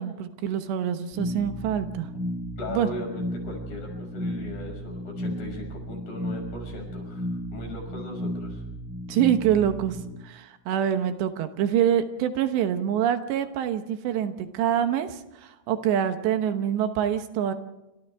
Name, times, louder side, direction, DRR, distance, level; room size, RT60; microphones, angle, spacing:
voice 1, 0.0-2.1 2.7-2.9 9.1-10.0 10.2-17.5, right 9 dB, 75° right, 8 dB, 3.3 m, -25 dB
sound 1, 1.1-10.1, equal, 5° right, 3.5 m, -34 dB
voice 2, 2.6-8.6, left 1 dB, 50° left, 2 dB, 7.7 m, -38 dB
29.0 x 27.0 x 3.5 m, 0.96 s
omnidirectional pair, 5.2 m